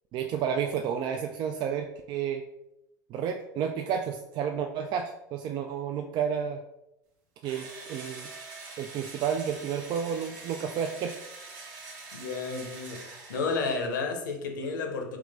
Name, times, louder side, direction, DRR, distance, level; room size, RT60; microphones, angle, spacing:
voice 1, 0.1-2.4 3.1-6.6 7.4-8.3 8.8-11.2, right 7 dB, 45° right, 4 dB, 0.4 m, -31 dB
Engine / Drill, 7.4-14.0, right 3 dB, 70° right, 1.1 m, -45 dB
voice 2, 12.1-15.2, left 4 dB, 80° left, 4 dB, 0.7 m, -32 dB
3.6 x 3.2 x 3.3 m, 0.87 s
hypercardioid pair, 75°, 10 cm